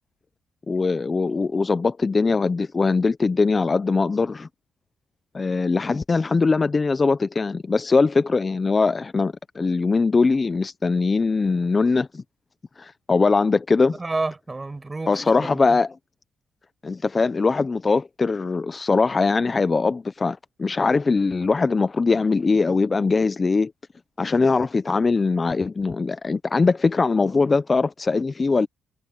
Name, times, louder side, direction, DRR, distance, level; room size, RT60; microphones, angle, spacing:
voice 1, 0.7-4.5 5.3-12.2 12.8-14.0 15.1-15.9 16.8-23.7 24.2-28.7, left 4 dB, 30° left, 0.7 m, -21 dB
voice 2, 14.0-15.8, right 3 dB, 20° right, 7.8 m, -30 dB
cardioid pair, 90°, 0 cm